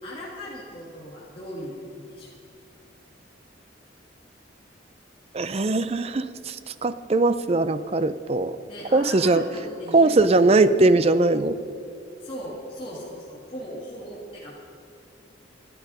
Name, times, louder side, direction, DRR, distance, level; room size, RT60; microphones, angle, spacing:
voice 1, 0.0-2.3 8.7-10.6 12.2-14.5, equal, 30° left, -8 dB, 2.1 m, -38 dB
voice 2, 5.3-6.6 6.8-8.6 8.9-9.4 9.9-11.6, right 2 dB, 35° right, 13 dB, 0.5 m, -20 dB
12.5 x 12.0 x 5.5 m, 2.6 s
head